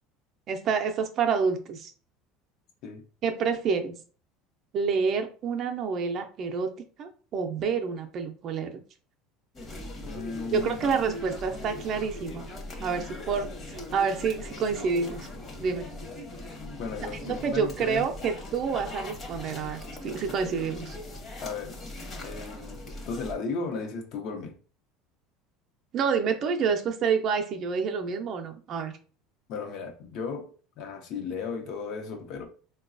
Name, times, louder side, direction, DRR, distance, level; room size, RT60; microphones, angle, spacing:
voice 1, 0.5-1.9 3.2-4.0 4.7-6.7 7.0-8.8 10.5-12.5 12.8-15.3 15.6-15.9 17.2-21.0 25.9-28.9, right 5 dB, 45° right, 0.5 m, -28 dB
sound 1, 9.5-23.3, left 2 dB, 30° left, 1.0 m, -40 dB
voice 2, 10.1-10.8 16.8-18.1 21.4-21.8 22.2-22.8 23.1-24.6 29.5-32.5, left 4 dB, 60° left, 0.8 m, -35 dB
3.9 x 2.2 x 2.5 m
supercardioid pair, 120°, 0 cm